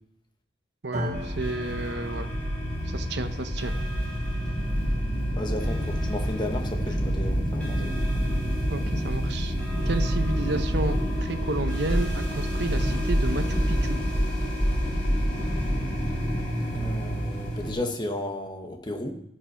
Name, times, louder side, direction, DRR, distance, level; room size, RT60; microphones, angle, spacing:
voice 1, 0.8-2.3 2.9-3.7 8.7-9.5 9.9-14.0, right 2 dB, 65° right, 9 dB, 0.8 m, -32 dB
sound 1, 0.9-9.2, equal, 35° right, 1.3 m, -41 dB
sound 2, 1.1-17.7, equal, 5° left, 3.9 m, -27 dB
voice 2, 5.3-7.9 16.7-19.1, left 1 dB, 25° left, 3 dB, 1.2 m, -33 dB
15.0 x 5.5 x 5.7 m, 0.77 s
head